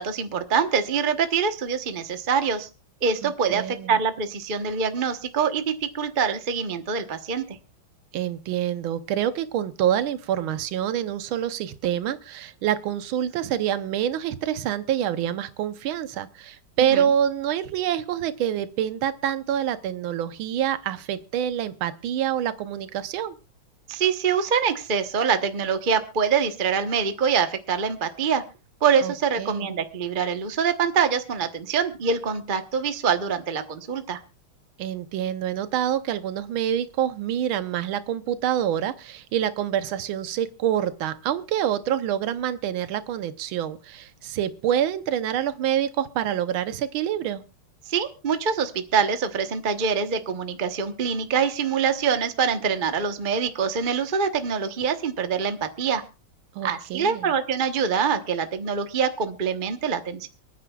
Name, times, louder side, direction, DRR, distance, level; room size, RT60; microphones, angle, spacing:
voice 1, 0.0-2.7 3.0-7.6 16.8-17.0 23.9-28.4 28.8-34.2 47.9-56.0 56.6-60.3, right 6 dB, 35° right, 7 dB, 0.9 m, -25 dB
voice 2, 3.2-4.0 8.1-23.3 29.0-29.7 34.8-47.4 56.5-57.3, right 10 dB, 75° right, 11 dB, 1.7 m, -26 dB
28.5 x 9.5 x 2.3 m, 0.31 s
omnidirectional pair, 2.3 m